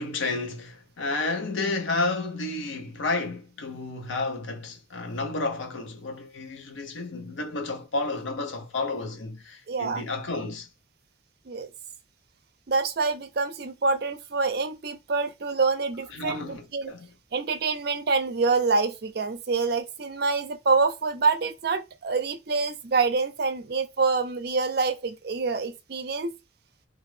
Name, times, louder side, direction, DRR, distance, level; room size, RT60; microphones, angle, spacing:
voice 1, 0.0-10.7 16.1-17.1, left 3 dB, 85° left, 0.7 m, -31 dB
voice 2, 9.7-10.0 11.5-11.7 12.7-16.9 17.3-26.3, right 4 dB, 55° right, 0.5 m, -26 dB
2.9 x 2.5 x 3.2 m
head